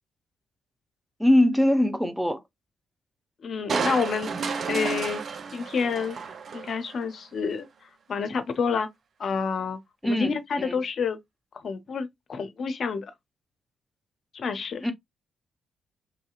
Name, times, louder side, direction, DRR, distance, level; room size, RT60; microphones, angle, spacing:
voice 1, 1.2-2.4 10.0-10.8 14.8-14.9, left 1 dB, 5° right, 0.7 m, -22 dB
voice 2, 3.4-4.3 4.7-5.2 5.5-6.2 6.5-7.7 8.1-8.9 9.2-11.2 11.5-13.1 14.3-14.9, left 5 dB, 55° left, 0.6 m, -28 dB
Crushing, 3.7-7.1 7.5-7.6, right 5 dB, 55° right, 0.4 m, -31 dB
3.1 x 2.7 x 2.3 m
hypercardioid pair, 40°, 0 cm